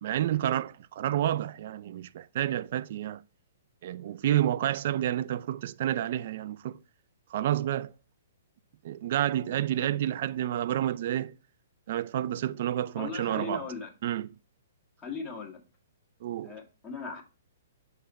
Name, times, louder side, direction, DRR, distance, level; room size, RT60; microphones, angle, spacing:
voice 1, 0.0-3.2 3.8-6.8 7.3-7.9 8.8-11.3 11.9-13.7 14.0-14.3 16.2-16.6, right 12 dB, 55° right, 0.4 m, -29 dB
voice 2, 12.9-13.9 15.0-15.6 16.4-17.2, left 5 dB, 15° left, 1.7 m, -38 dB
6.6 x 4.1 x 4.1 m
hypercardioid pair, 125°, 0 cm